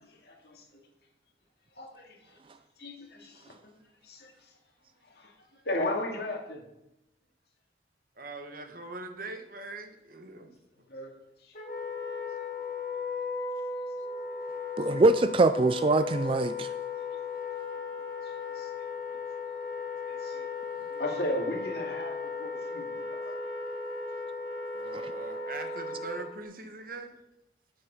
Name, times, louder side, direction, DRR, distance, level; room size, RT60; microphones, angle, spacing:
voice 1, 0.2-0.8 1.8-2.2 2.8-3.7 4.0-4.3 5.1-5.3 5.7-6.6 10.9-11.1 11.4-11.5 18.6-18.7 20.1-20.5 20.9-23.3, left 1 dB, 60° left, 1 dB, 2.2 m, -35 dB
voice 2, 8.2-10.5 24.7-27.2, right 3 dB, 50° right, 5 dB, 1.3 m, -42 dB
Wind instrument woodwind instrument, 11.5-26.4, left 4 dB, 40° left, 2.7 m, -36 dB
voice 3, 14.8-16.7 24.9-25.1, right 3 dB, 30° right, 12 dB, 0.3 m, -23 dB
9.8 x 7.8 x 5.4 m, 0.87 s
head